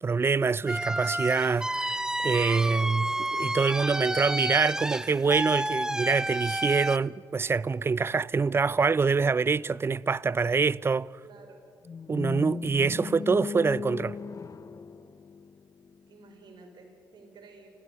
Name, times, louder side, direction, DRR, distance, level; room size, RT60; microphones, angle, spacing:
voice 1, 0.0-3.1 3.4-11.1 12.1-14.2, right 4 dB, 30° right, 0.5 m, -25 dB
sound 1, 0.7-7.0, right 1 dB, 10° right, 0.8 m, -30 dB
voice 2, 2.4-3.3 3.9-5.0 11.2-11.6 16.1-17.7, right 3 dB, 60° right, 5.1 m, -50 dB
sound 2, 11.8-16.0, left 5 dB, 40° left, 0.7 m, -37 dB
29.0 x 14.5 x 8.3 m
supercardioid pair, 60°, 8 cm